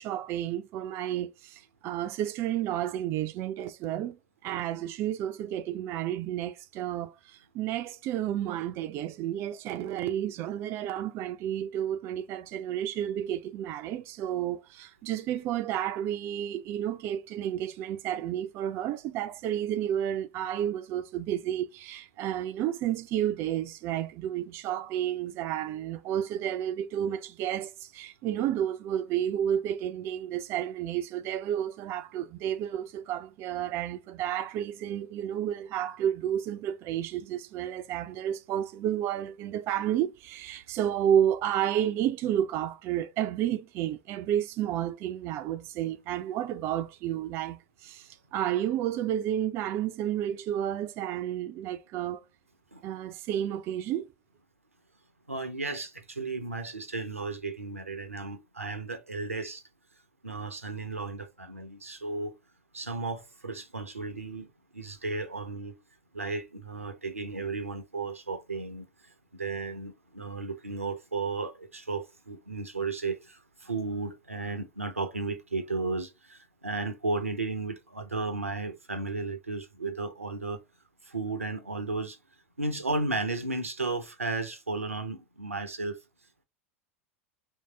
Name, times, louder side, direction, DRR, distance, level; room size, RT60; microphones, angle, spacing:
voice 1, 0.0-52.2 52.8-54.1, right 11 dB, 35° right, 0.4 m, -31 dB
voice 2, 55.3-59.6 60.2-62.3 62.7-65.8 66.1-80.6 81.0-82.2 82.6-86.0, right 3 dB, 85° right, 0.6 m, -34 dB
3.1 x 2.7 x 3.3 m
figure-of-eight pair, 85°, 7 cm